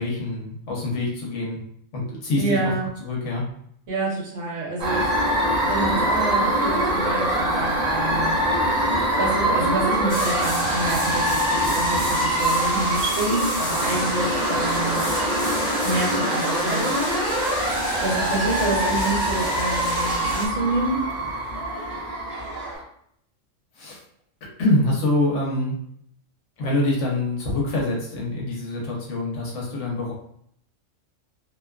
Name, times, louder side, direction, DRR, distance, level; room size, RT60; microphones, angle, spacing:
voice 1, 0.0-1.6 1.9-2.7 3.0-3.4 23.8-24.0 24.6-25.8 26.6-30.1, left 2 dB, 70° left, -2 dB, 1.1 m, -25 dB
voice 2, 2.4-2.8 3.9-8.9 9.2-15.4 15.8-17.1 18.0-21.0, right 2 dB, 75° right, -3 dB, 1.2 m, -28 dB
sound 1, 4.8-22.8, right 1 dB, 45° right, 0.6 m, -24 dB
sound 2, 10.1-20.5, left 1 dB, 40° left, 0.9 m, -31 dB
Laughter, 11.9-22.8, right 2 dB, 25° right, 0.9 m, -38 dB
2.7 x 2.2 x 2.3 m, 0.68 s
omnidirectional pair, 1.3 m